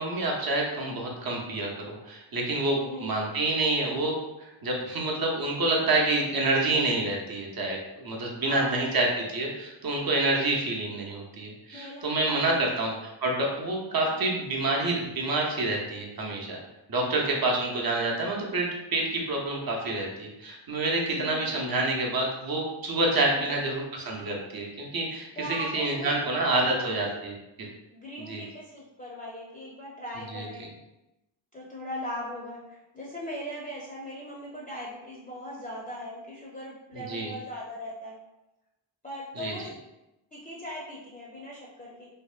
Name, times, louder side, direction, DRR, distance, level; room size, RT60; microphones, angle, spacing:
voice 1, 0.0-4.2 4.6-9.1 9.3-12.9 13.2-16.6 16.9-27.3 28.3-28.4 30.3-30.4 36.9-37.3 39.4-39.5, right 2 dB, 50° right, -2 dB, 0.7 m, -28 dB
voice 2, 2.7-3.1 8.4-8.9 11.7-12.8 14.1-14.4 16.9-17.4 21.1-21.5 23.3-23.7 25.3-27.1 27.9-30.6 31.5-38.1 39.0-39.7 40.3-42.1, left 1 dB, 15° left, -5 dB, 0.5 m, -39 dB
2.7 x 2.0 x 2.4 m, 0.96 s
cardioid pair, 45°, 47 cm